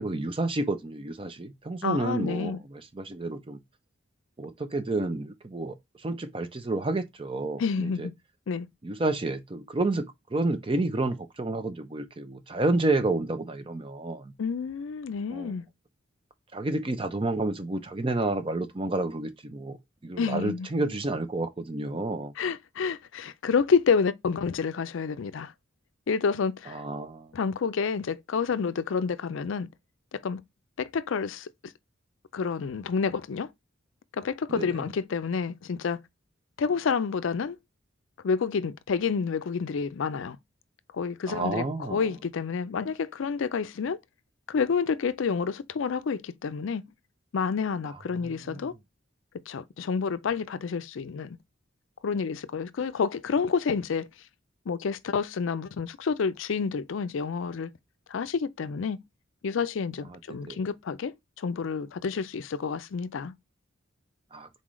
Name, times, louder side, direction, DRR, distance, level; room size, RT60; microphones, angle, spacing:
voice 1, 0.0-3.6 4.4-8.1 8.8-14.3 15.3-15.5 16.5-19.8 20.0-22.3 26.7-27.3 34.5-34.8 41.3-42.1 48.2-48.7 60.1-60.6 64.3-64.5, right 2 dB, 25° right, 0.5 m, -30 dB
voice 2, 1.8-2.6 7.6-8.1 8.5-8.7 14.4-15.6 20.2-20.7 22.4-25.5 26.1-26.8 27.3-29.7 30.1-30.4 30.8-31.7 32.3-33.5 34.1-36.0 36.6-37.6 38.2-40.4 40.9-44.0 44.5-46.8 47.3-48.7 49.5-51.4 52.0-54.1 54.7-57.7 58.1-59.0 59.4-63.3, left 5 dB, 75° left, 0.4 m, -29 dB
4.1 x 3.8 x 3.1 m
head